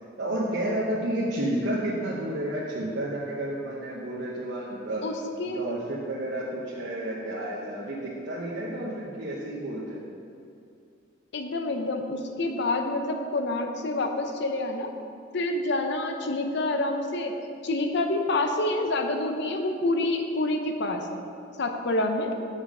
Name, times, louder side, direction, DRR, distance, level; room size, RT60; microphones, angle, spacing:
voice 1, 0.2-5.0 5.5-10.0, right 1 dB, 65° right, -6 dB, 0.9 m, -31 dB
voice 2, 11.3-14.9 15.3-17.3 17.6-21.1 21.6-22.3, left 2 dB, 65° left, 5 dB, 0.7 m, -27 dB
7.0 x 5.6 x 4.9 m, 2.4 s
head